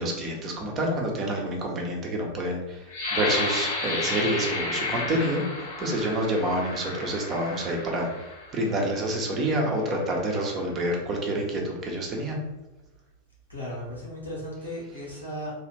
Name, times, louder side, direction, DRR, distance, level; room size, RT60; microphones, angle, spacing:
voice 1, 0.0-2.8 3.1-8.2 8.5-12.4, right 1 dB, 30° right, 0 dB, 0.8 m, -28 dB
sound 1, 2.9-8.6 9.2-9.4 9.9-10.3, left 3 dB, 60° left, 1.1 m, -32 dB
voice 2, 13.5-15.5, equal, 90° left, -5 dB, 1.3 m, -36 dB
3.1 x 2.4 x 3.1 m, 1.0 s
figure-of-eight pair, 90°, 0 cm